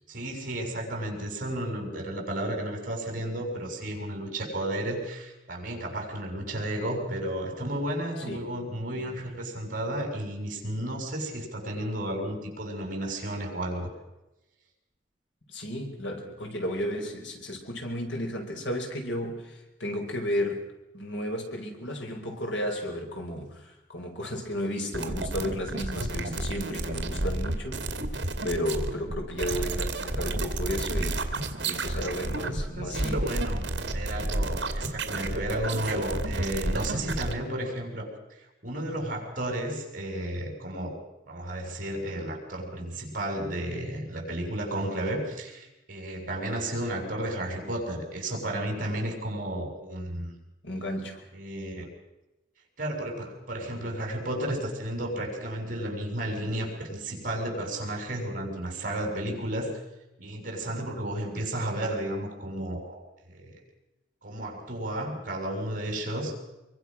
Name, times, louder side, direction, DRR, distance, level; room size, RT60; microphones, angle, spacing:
voice 1, 0.1-13.9 29.6-29.7 32.8-33.7 33.9-38.1 38.6-41.0 41.3-50.3 51.3-51.9 52.8-59.7 60.2-63.0 63.3-63.6 64.2-66.3, right 1 dB, 50° right, 3 dB, 6.6 m, -33 dB
voice 2, 15.5-20.7 20.9-27.8 28.4-33.3 50.6-51.2, equal, 90° left, 2 dB, 5.2 m, -33 dB
sound 1, 24.9-37.3, right 2 dB, 70° right, 2.3 m, -31 dB
26.0 x 23.5 x 6.2 m, 0.96 s
head